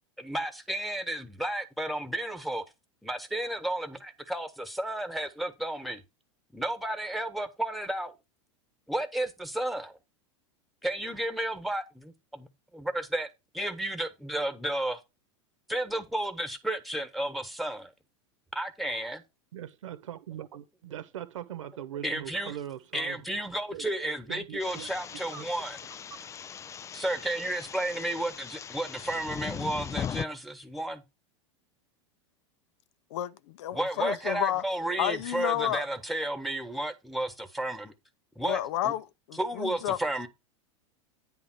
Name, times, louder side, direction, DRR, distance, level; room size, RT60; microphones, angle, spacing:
voice 1, 0.2-2.6 3.0-6.0 6.5-8.1 8.9-10.0 10.8-12.5 12.7-13.3 13.5-15.0 15.7-17.9 18.5-19.2 22.0-22.6 22.9-25.8 26.9-31.0 33.7-37.9 38.4-38.9 39.4-40.3, right 1 dB, ahead, 1.4 m, -32 dB
voice 2, 19.5-23.2 23.7-23.8 24.3-24.9 25.3-25.5, right 11 dB, 80° right, 1.2 m, -40 dB
sound 1, 24.6-30.2, left 8 dB, 20° left, 0.3 m, -39 dB
voice 3, 33.1-34.6 35.0-35.9 38.4-40.0, left 12 dB, 65° left, 0.6 m, -31 dB
9.6 x 3.5 x 6.2 m
hypercardioid pair, 105°, 16 cm